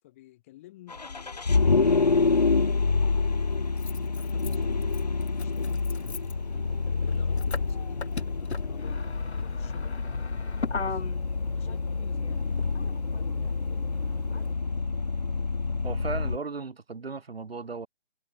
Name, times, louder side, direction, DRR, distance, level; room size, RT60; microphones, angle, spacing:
voice 1, 0.0-3.6 4.1-6.5 7.0-9.0 9.3-11.0 11.5-14.8, left 16 dB, 15° left, 3.1 m, -54 dB
Vehicle, 0.9-16.4, left 4 dB, 40° left, 0.5 m, -27 dB
Motor vehicle (road), 2.2-2.3 3.4-14.5, left 4 dB, 85° left, 2.3 m, -37 dB
voice 2, 15.8-17.9, right 4 dB, 65° right, 5.4 m, -36 dB
hypercardioid pair, 175°, 32 cm